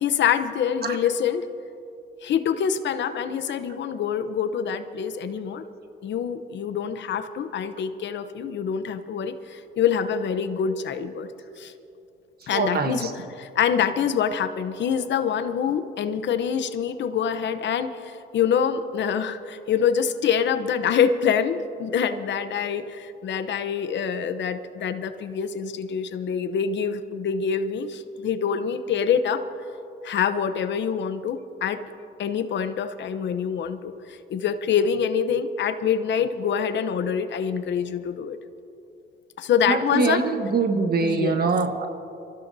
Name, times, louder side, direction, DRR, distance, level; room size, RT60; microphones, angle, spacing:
voice 1, 0.0-1.4 2.2-5.6 6.0-11.3 11.6-11.7 12.5-29.4 30.0-31.8 32.2-38.4 39.4-40.2 41.0-41.5, left 7 dB, 65° left, 10 dB, 0.8 m, -25 dB
voice 2, 12.5-13.1 39.7-41.9, right 4 dB, 50° right, 7 dB, 1.3 m, -23 dB
26.0 x 15.0 x 2.7 m, 2.7 s
cardioid pair, 90°, 20 cm